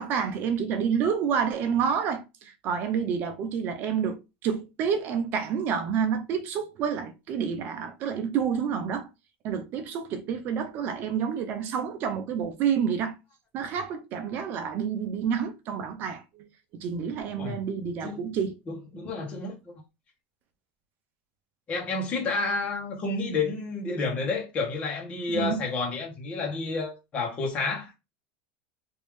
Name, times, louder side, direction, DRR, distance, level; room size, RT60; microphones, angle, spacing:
voice 1, 0.0-9.1 9.4-13.1 13.5-16.2 16.7-18.5 25.3-25.6, right 7 dB, 40° right, 0.7 m, -29 dB
voice 2, 18.7-19.8 21.7-27.9, left 3 dB, 25° left, 1.1 m, -30 dB
3.2 x 2.7 x 3.5 m
supercardioid pair, 150°, 5 cm